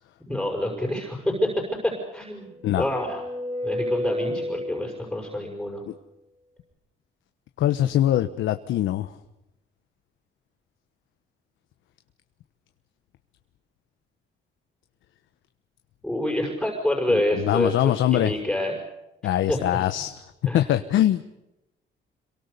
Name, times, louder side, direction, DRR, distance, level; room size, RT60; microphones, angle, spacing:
voice 1, 0.3-1.5 1.8-3.2 3.6-5.8 16.0-18.7 19.5-19.6 20.5-20.6, left 1 dB, 5° left, 1 dB, 6.2 m, -27 dB
sound 1, 2.2-5.3, left 1 dB, 35° right, 7.3 m, -31 dB
voice 2, 7.6-9.1 17.4-18.3 19.2-20.1 20.5-21.2, left 12 dB, 80° left, 8 dB, 1.2 m, -22 dB
27.0 x 23.5 x 6.9 m, 0.92 s
cardioid pair, 90°, 20 cm